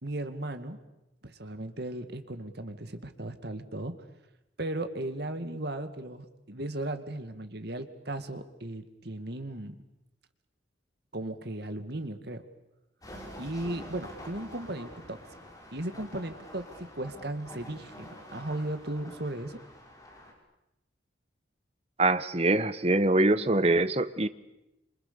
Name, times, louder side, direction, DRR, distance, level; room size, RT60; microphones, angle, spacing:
voice 1, 0.0-0.8 1.2-3.9 4.6-9.8 11.1-12.4 13.4-15.2 15.7-19.6, right 1 dB, 55° right, 9 dB, 2.2 m, -36 dB
sound 1, 13.0-20.3, left 1 dB, 20° left, 5.8 m, -47 dB
voice 2, 22.0-24.3, right 2 dB, 30° right, 13 dB, 1.1 m, -24 dB
27.5 x 27.5 x 6.9 m, 0.91 s
head